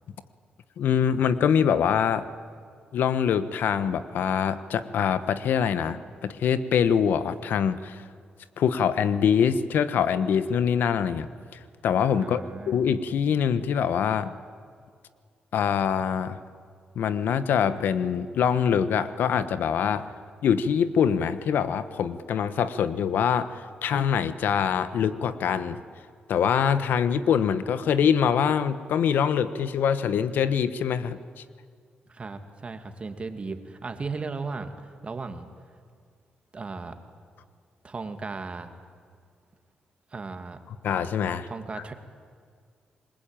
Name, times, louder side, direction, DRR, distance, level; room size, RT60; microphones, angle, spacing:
voice 1, 0.8-2.2 2.9-8.0 8.6-12.4 12.7-14.4 15.5-16.4 16.9-20.1 20.4-25.8 26.3-31.4 40.8-41.5, left 7 dB, 80° left, 13 dB, 1.1 m, -24 dB
voice 2, 12.2-12.8 32.1-35.5 36.5-37.0 37.8-38.7 40.1-40.6 41.5-41.9, right 4 dB, 35° right, 7 dB, 2.4 m, -36 dB
27.5 x 21.0 x 9.0 m, 2.1 s
cardioid pair, 75°, 3 cm